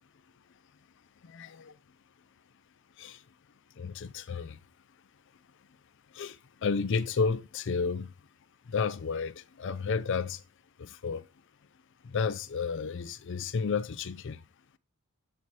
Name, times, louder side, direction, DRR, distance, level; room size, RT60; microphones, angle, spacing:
voice 1, 1.2-1.7 3.0-3.2 3.8-4.6 6.1-6.4 6.6-8.1 8.7-10.4 10.8-11.2 12.0-14.4, left 5 dB, 55° left, 0.5 m, -32 dB
8.0 x 4.1 x 4.7 m
head